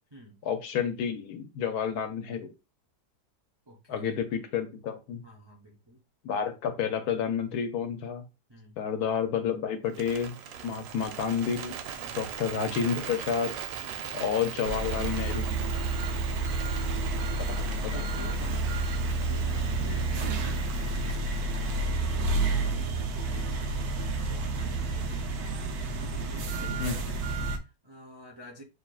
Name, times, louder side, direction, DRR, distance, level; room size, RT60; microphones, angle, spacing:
voice 1, 0.4-2.5 3.9-5.2 6.2-8.2 8.8-10.4 10.6-11.8 12.1-13.5 14.1-15.6 17.4-17.6 17.9-18.0 26.8-26.9, left 7 dB, 70° left, 1.1 m, -30 dB
voice 2, 3.7-4.2 5.2-6.0 8.5-8.8 10.5-10.8 11.9-12.2 13.8-14.1 16.3-18.7 19.2-22.3 22.6-25.5 26.0-28.6, equal, 35° right, 0.4 m, -50 dB
Bird, 9.9-22.1, right 9 dB, 90° right, 1.3 m, -41 dB
sound 1, 14.6-27.6, right 2 dB, 70° right, 1.1 m, -30 dB
6.7 x 2.4 x 2.4 m
omnidirectional pair, 1.9 m